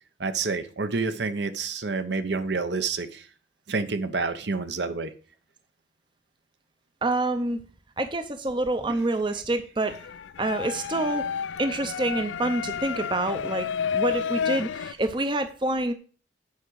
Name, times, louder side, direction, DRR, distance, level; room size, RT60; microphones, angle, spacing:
voice 1, 0.2-3.2 3.7-5.1, right 4 dB, 70° right, 10 dB, 0.8 m, -28 dB
voice 2, 7.0-7.6 8.0-10.0 10.4-11.3 11.6-13.7 13.9-15.9, right 2 dB, 25° right, 9 dB, 0.6 m, -27 dB
sound 1, 9.9-14.9, left 7 dB, 90° left, 0.4 m, -31 dB
8.6 x 4.9 x 6.3 m, 0.39 s
head